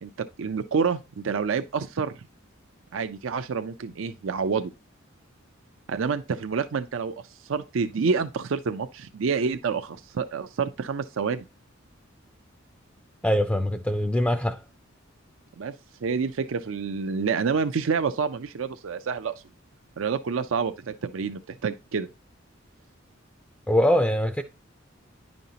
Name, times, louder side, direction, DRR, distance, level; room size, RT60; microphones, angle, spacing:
voice 1, 0.0-2.1 2.9-4.7 5.9-7.1 7.4-11.4 15.6-15.7 16.0-19.3 20.0-22.1, right 5 dB, 70° right, 0.5 m, -28 dB
voice 2, 13.2-14.6 23.7-24.4, equal, 5° left, 0.4 m, -23 dB
10.0 x 5.2 x 2.8 m
head